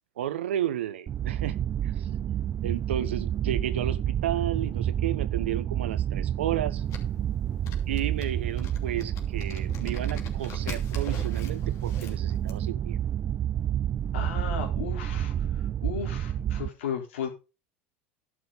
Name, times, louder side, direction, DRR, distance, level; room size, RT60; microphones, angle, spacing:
voice 1, 0.2-1.6 1.8-2.1 2.6-6.8 7.9-13.0, right 11 dB, 85° right, 1.1 m, -32 dB
sound 1, 1.1-16.7, right 10 dB, 35° right, 0.4 m, -29 dB
sound 2, 6.9-12.6, left 6 dB, 55° left, 2.8 m, -44 dB
voice 2, 14.1-15.3 15.8-17.3, left 7 dB, 80° left, 3.6 m, -34 dB
11.0 x 6.2 x 5.5 m
hypercardioid pair, 85°, 6 cm